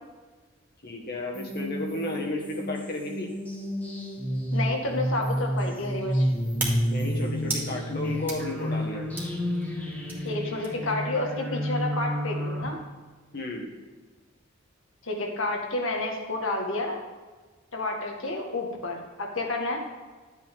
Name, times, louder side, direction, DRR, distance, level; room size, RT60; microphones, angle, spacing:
voice 1, 0.8-3.3 6.9-9.1 13.3-13.7, left 2 dB, 50° left, 0 dB, 1.6 m, -33 dB
sound 1, 1.3-12.6, equal, 5° left, 1.6 m, -30 dB
voice 2, 4.5-6.3 10.2-12.8 15.0-17.0 17.7-19.8, left 2 dB, 75° left, 1 dB, 1.8 m, -30 dB
sound 2, 4.7-11.0, right 2 dB, 10° right, 1.9 m, -40 dB
11.5 x 8.3 x 3.7 m, 1.4 s
head